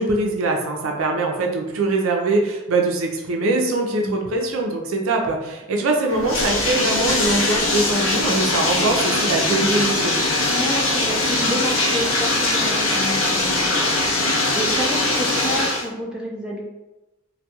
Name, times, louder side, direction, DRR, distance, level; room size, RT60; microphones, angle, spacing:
voice 1, 0.0-10.1, right 2 dB, 80° right, 1 dB, 0.5 m, -22 dB
voice 2, 3.9-4.4 10.5-16.6, equal, 5° right, -3 dB, 0.3 m, -30 dB
Bathtub (filling or washing), 6.1-15.9, left 2 dB, 65° left, 0.6 m, -21 dB
2.3 x 2.2 x 2.8 m, 1.0 s
head